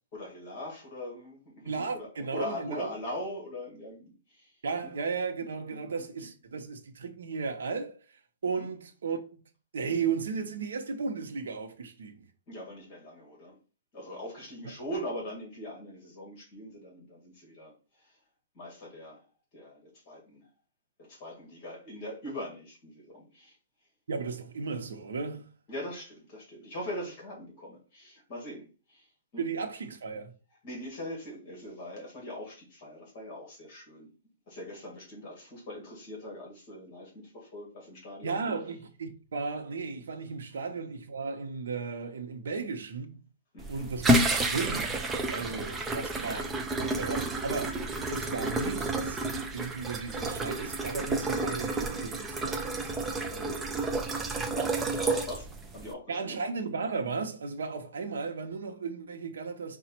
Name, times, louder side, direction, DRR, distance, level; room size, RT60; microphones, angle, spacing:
voice 1, 0.1-4.5 5.7-5.8 8.6-8.7 12.5-13.6 13.9-17.7 18.5-19.2 19.5-20.5 21.1-23.5 25.7-29.1 29.3-29.4 30.6-34.1 34.5-38.4 43.5-43.9 46.1-46.5 54.5-55.4 55.7-56.4, left 1 dB, 30° left, 2.0 m, -41 dB
voice 2, 1.6-2.9 4.6-8.0 8.4-9.4 9.7-12.2 14.6-14.7 24.1-25.5 29.4-30.3 38.2-43.2 43.7-45.0 45.3-46.5 46.8-47.8 48.1-49.2 49.5-53.7 56.1-59.8, right 5 dB, 85° right, 0.9 m, -35 dB
sound 1, 43.6-55.9, right 2 dB, 10° right, 0.4 m, -30 dB
5.0 x 2.4 x 4.3 m
hypercardioid pair, 170°, 0 cm